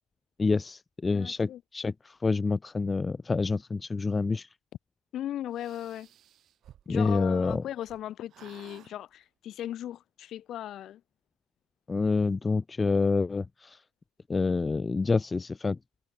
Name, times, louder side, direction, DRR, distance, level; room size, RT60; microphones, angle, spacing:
voice 1, 0.4-4.5 6.9-7.6 11.9-13.8 14.3-15.8, left 4 dB, 15° left, 0.5 m, -27 dB
voice 2, 1.1-1.6 5.1-6.1 6.9-11.0, left 12 dB, 40° left, 1.6 m, -37 dB
sound 1, 5.5-8.0 8.3-8.9, right 11 dB, 40° right, 5.6 m, -52 dB
hypercardioid pair, 90°, 0 cm